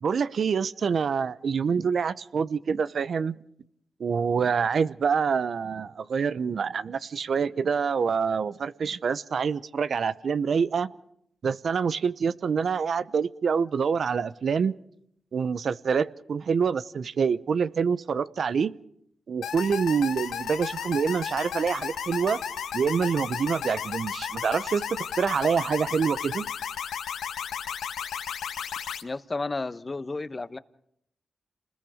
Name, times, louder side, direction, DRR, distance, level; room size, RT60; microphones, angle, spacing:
voice 1, 0.0-3.4 4.0-10.9 11.4-14.7 15.3-18.7 19.3-22.4 22.7-24.8 25.2-26.5, right 6 dB, 70° right, 15 dB, 0.8 m, -26 dB
sound 1, 19.4-29.0, left 8 dB, 85° left, 1.2 m, -34 dB
voice 2, 29.0-30.6, left 3 dB, 35° left, 13 dB, 1.1 m, -32 dB
28.0 x 20.5 x 5.0 m, 0.72 s
supercardioid pair, 45°, 0 cm